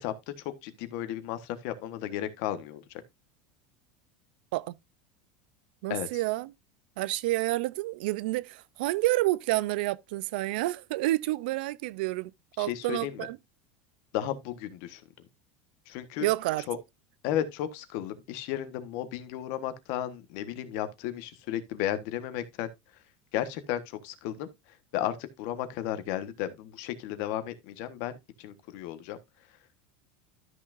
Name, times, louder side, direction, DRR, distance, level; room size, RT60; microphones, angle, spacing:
voice 1, 0.0-2.8 5.9-6.2 12.6-13.3 14.1-15.0 15.9-16.3 16.7-16.8 17.2-22.7 23.3-29.2, left 11 dB, 50° left, 1.3 m, -34 dB
voice 2, 5.8-6.5 7.0-12.3 12.6-13.4 16.2-16.7, right 18 dB, 70° right, 0.5 m, -29 dB
13.0 x 6.2 x 2.6 m
supercardioid pair, 170°, 6 cm